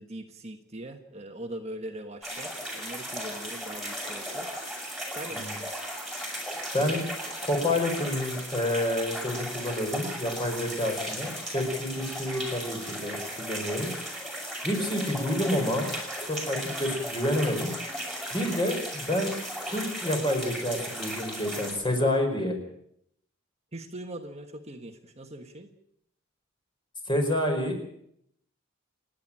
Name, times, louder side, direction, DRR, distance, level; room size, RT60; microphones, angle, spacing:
voice 1, 0.0-4.5 5.1-5.8 23.7-25.7, right 1 dB, 30° right, 4 dB, 1.4 m, -41 dB
sound 1, 2.2-21.7, equal, ahead, 5.6 m, -36 dB
voice 2, 6.7-7.0 7.4-13.9 14.6-15.9 16.3-17.7 18.3-19.3 19.6-22.6 27.1-27.8, left 1 dB, 25° left, 3 dB, 5.1 m, -28 dB
29.5 x 10.5 x 8.8 m, 0.74 s
head